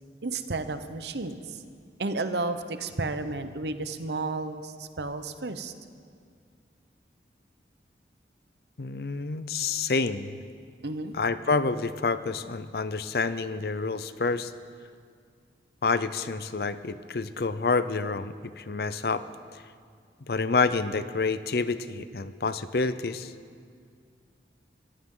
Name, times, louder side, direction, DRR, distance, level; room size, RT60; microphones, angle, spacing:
voice 1, 0.2-1.6 2.0-5.7 10.8-11.2, right 3 dB, 75° right, 10 dB, 0.9 m, -32 dB
voice 2, 8.8-10.4 11.1-14.5 15.8-19.2 20.3-23.3, left 4 dB, 60° left, 13 dB, 0.6 m, -28 dB
24.5 x 15.0 x 3.8 m, 2.1 s
head